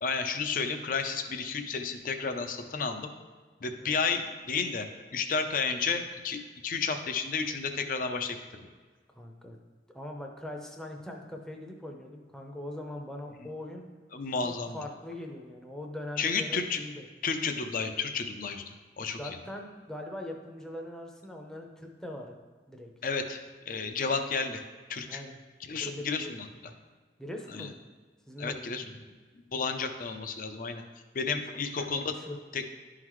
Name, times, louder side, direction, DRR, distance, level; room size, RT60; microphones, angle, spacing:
voice 1, 0.0-3.1 3.6-8.7 14.1-14.8 16.2-16.8 17.2-18.6 19.0-19.2 23.0-23.4 23.7-24.6 24.9-25.2 25.7-26.5 27.5-27.7 28.4-28.8 29.5-30.8 31.1-32.1 32.5-32.6, left 5 dB, 50° left, 7 dB, 0.5 m, -32 dB
voice 2, 9.1-9.6 9.9-13.8 14.4-17.0 19.2-22.4 22.7-22.9 25.1-25.4 25.8-26.5 27.2-27.8 28.3-28.7 31.4-31.5 31.9-32.4, left 1 dB, 5° left, 1 dB, 0.6 m, -41 dB
11.5 x 3.9 x 3.1 m, 1.4 s
head